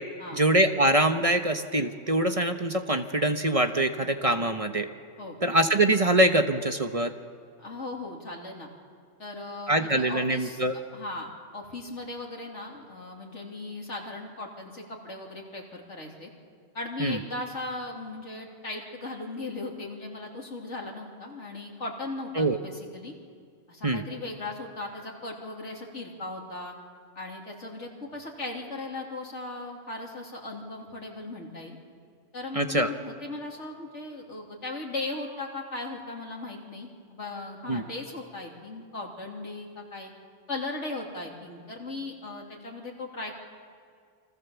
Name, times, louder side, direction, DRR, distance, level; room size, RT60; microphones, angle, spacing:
voice 1, 0.3-4.9 5.4-7.1 9.7-10.7 17.0-17.2 22.4-22.6 23.8-24.0 32.5-32.9 37.7-37.8, right 1 dB, 30° right, 7 dB, 1.1 m, -24 dB
voice 2, 7.6-8.7 9.2-10.6 10.9-16.3 16.7-23.1 23.7-26.7 27.1-31.8 32.3-40.1 40.5-43.4, left 2 dB, 70° left, -1 dB, 3.4 m, -38 dB
29.0 x 24.0 x 7.1 m, 2.1 s
omnidirectional pair, 1.2 m